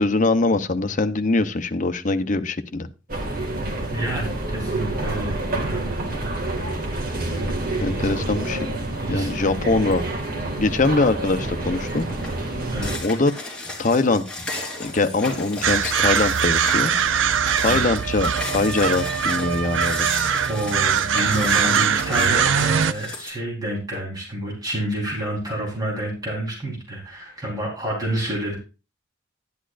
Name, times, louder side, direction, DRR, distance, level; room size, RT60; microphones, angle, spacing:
voice 1, 0.0-2.9 7.8-8.7 9.1-10.0 10.6-12.1 13.0-13.3 13.8-14.2 14.8-16.9 17.6-20.1, left 3 dB, 45° left, 9 dB, 0.8 m, -22 dB
sound 1, 3.1-13.0, right 2 dB, 50° right, 2.0 m, -28 dB
voice 2, 3.9-5.9 7.3-7.5 8.0-8.1 9.0-9.3 12.7-12.9 17.6-17.8 20.5-28.6, right 1 dB, 20° right, -3 dB, 3.9 m, -28 dB
sound 2, 11.0-11.2 11.7-23.3, left 2 dB, 5° left, 3.3 m, -34 dB
sound 3, 15.6-22.9, right 7 dB, 90° right, 0.5 m, -21 dB
11.0 x 11.0 x 2.5 m, 0.32 s
head